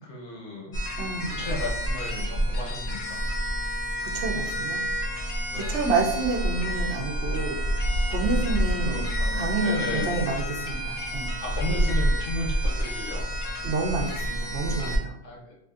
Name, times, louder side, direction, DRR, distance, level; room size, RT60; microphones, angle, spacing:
voice 1, 0.0-0.8 1.3-3.2 5.5-5.8 8.3-10.1 11.4-13.3 15.2-15.5, left 2 dB, 75° left, -3 dB, 1.1 m, -35 dB
sound 1, 0.7-15.0, equal, 60° left, 0.7 m, -28 dB
voice 2, 1.0-1.3 4.0-4.8 5.5-7.6 8.1-9.1 9.3-11.3 13.6-15.2, right 3 dB, 70° right, 1 dB, 0.8 m, -29 dB
2.8 x 2.4 x 2.4 m, 0.76 s
omnidirectional pair, 1.2 m